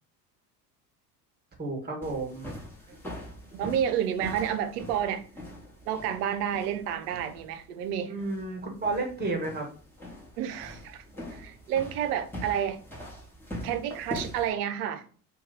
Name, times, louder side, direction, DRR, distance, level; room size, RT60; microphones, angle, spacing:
voice 1, 1.6-2.5 8.1-9.7, right 3 dB, 20° right, 1.3 m, -32 dB
sound 1, 2.0-14.5, left 1 dB, 5° left, 1.1 m, -43 dB
voice 2, 3.5-5.2 5.9-8.2 10.4-12.8 13.6-15.1, right 9 dB, 75° right, 0.6 m, -30 dB
2.7 x 2.3 x 3.8 m
hypercardioid pair, 70°, 47 cm